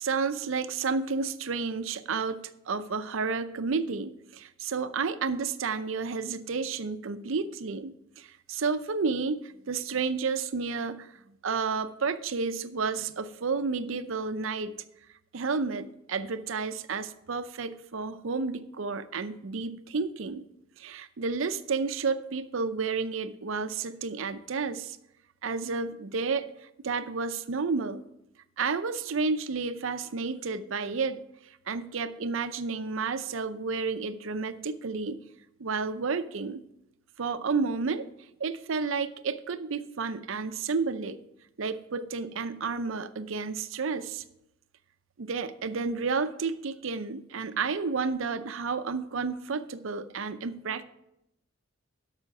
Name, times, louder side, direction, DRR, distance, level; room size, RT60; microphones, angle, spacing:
voice 1, 0.0-14.8 15.3-20.4 20.8-25.0 25.4-26.5 26.8-28.0 28.6-31.2 31.7-35.2 35.6-36.6 37.2-38.1 38.4-41.2 41.6-44.2 45.2-50.8, right 4 dB, 65° right, 12 dB, 0.6 m, -31 dB
12.5 x 5.7 x 4.7 m, 0.82 s
head